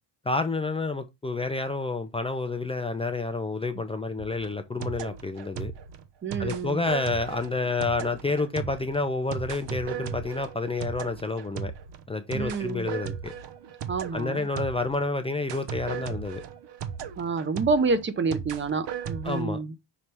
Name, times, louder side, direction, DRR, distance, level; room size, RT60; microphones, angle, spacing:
voice 1, 0.3-5.7 6.4-11.7 12.1-13.3 14.1-16.4 19.2-19.6, left 3 dB, 15° left, 0.4 m, -29 dB
sound 1, 4.2-15.1 15.5-19.4, right 8 dB, 70° right, 1.0 m, -37 dB
voice 2, 6.2-6.8 12.3-12.9 13.9-14.5 17.2-19.7, right 4 dB, 25° right, 0.7 m, -28 dB
6.1 x 3.3 x 5.4 m
cardioid pair, 165°, 44 cm